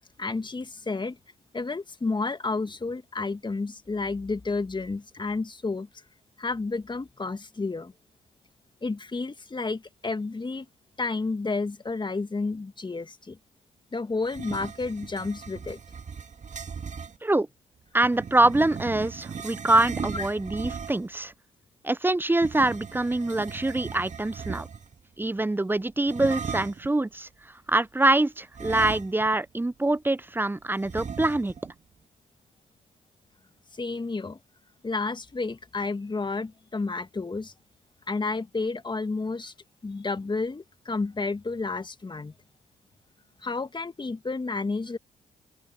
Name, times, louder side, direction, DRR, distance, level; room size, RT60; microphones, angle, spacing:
voice 1, 0.2-1.2 1.5-5.9 6.4-7.9 8.8-10.7 11.0-13.4 13.9-15.8 20.1-20.3 33.7-34.4 34.8-37.5 38.1-39.5 39.8-42.3 43.4-45.0, left 3 dB, 30° left, 1.8 m, -31 dB
sound 1, 14.2-17.2 18.0-21.2 22.3-25.0 26.1-26.9 28.5-29.5 29.8-29.9 30.8-31.7, right 6 dB, 45° right, 2.4 m, -37 dB
voice 2, 17.9-21.3 21.8-24.7 25.2-27.3 27.7-31.5, right 2 dB, 10° right, 0.7 m, -24 dB
open air
hypercardioid pair, 45°, 17 cm